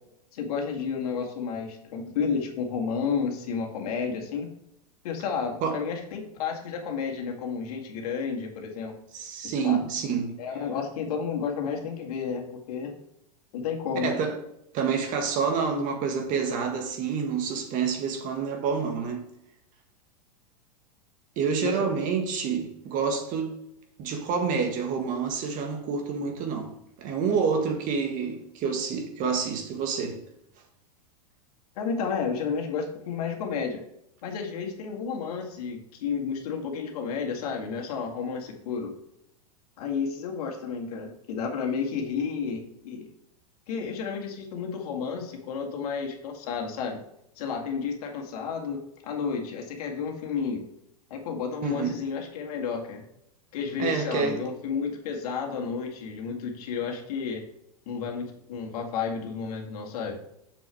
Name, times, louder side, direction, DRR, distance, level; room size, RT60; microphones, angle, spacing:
voice 1, 0.3-4.5 5.0-8.9 9.4-9.8 10.4-12.9 13.5-14.2 21.6-21.9 31.8-33.8 34.2-38.9 39.8-43.1 43.7-47.0 47.4-50.6 51.1-53.0 53.5-57.4 57.9-60.2, left 6 dB, 65° left, 2.0 m, -31 dB
voice 2, 9.1-10.3 14.0-14.4 14.7-19.2 21.3-23.5 24.0-26.7 27.0-30.2 51.6-51.9 53.8-54.4, right 6 dB, 40° right, 1.7 m, -28 dB
7.1 x 6.4 x 3.5 m
hypercardioid pair, 115°, 21 cm